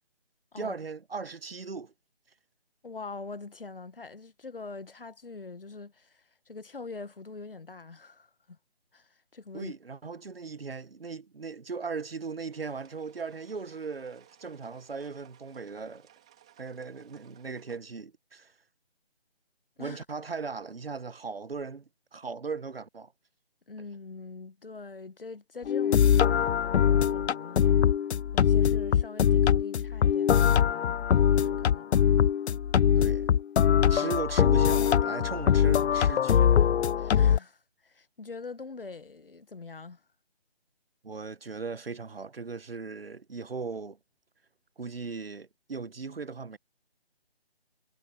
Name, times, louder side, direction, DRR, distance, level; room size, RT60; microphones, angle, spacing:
voice 1, 0.6-1.9 9.5-16.1 16.6-18.5 19.8-23.1 33.0-33.3 33.9-36.7 37.0-37.2 41.0-44.0 44.8-46.6, right 4 dB, 60° right, 1.2 m, -38 dB
voice 2, 2.8-8.6 8.9-9.7 19.8-20.0 23.7-27.8 28.3-31.9 37.1-40.0, left 4 dB, 55° left, 1.4 m, -44 dB
sound 1, 12.5-17.8, right 11 dB, 5° right, 1.7 m, -60 dB
sound 2, 25.7-37.4, left 8 dB, 85° left, 0.5 m, -23 dB
figure-of-eight pair, 180°, 32 cm